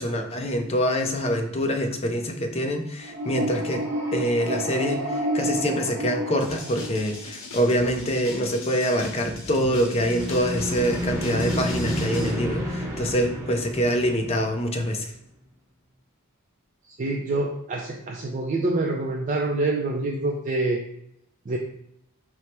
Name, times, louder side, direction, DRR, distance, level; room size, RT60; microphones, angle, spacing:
voice 1, 0.0-3.8 4.1-15.1, equal, 30° left, 4 dB, 0.5 m, -25 dB
sound 1, 3.0-7.3 9.9-14.9, equal, 15° right, 0.7 m, -30 dB
sound 2, 6.4-12.3, left 2 dB, 60° left, 0.9 m, -38 dB
voice 2, 17.0-20.8 21.5-21.6, right 2 dB, 35° right, 0 dB, 0.4 m, -26 dB
4.6 x 2.1 x 4.2 m, 0.78 s
head